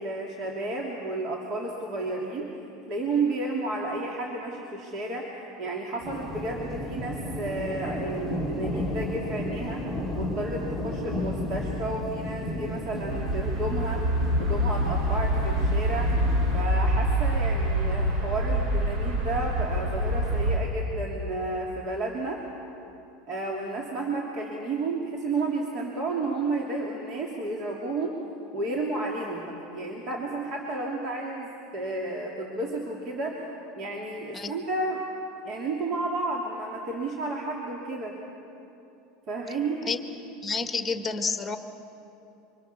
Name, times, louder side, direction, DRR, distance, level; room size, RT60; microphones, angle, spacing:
voice 1, 0.0-2.6 2.9-5.3 5.6-9.8 10.1-14.0 14.4-16.2 16.5-22.4 23.3-28.2 28.5-33.5 33.8-35.0 35.4-38.2 39.3-39.9, right 2 dB, 45° right, -2 dB, 3.2 m, -32 dB
sound 1, 6.0-16.6, left 1 dB, 20° right, 7.0 m, -33 dB
sound 2, 13.1-20.6, right 1 dB, 60° right, 4.6 m, -26 dB
voice 2, 40.4-41.6, left 4 dB, 15° left, 6 dB, 1.6 m, -29 dB
27.5 x 25.0 x 7.0 m, 2.8 s
supercardioid pair, 145°, 0 cm